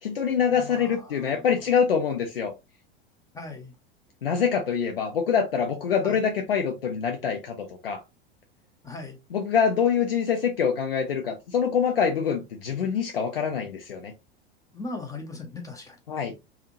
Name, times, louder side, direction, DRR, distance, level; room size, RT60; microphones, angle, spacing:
voice 1, 0.0-2.5 4.2-8.0 9.3-14.1 16.1-16.3, left 7 dB, 70° left, 0.7 m, -25 dB
voice 2, 0.5-1.5 3.3-3.7 6.0-6.2 8.8-9.2 14.7-16.0, left 3 dB, 10° left, 0.7 m, -39 dB
3.5 x 2.3 x 2.8 m
figure-of-eight pair, 85°, 29 cm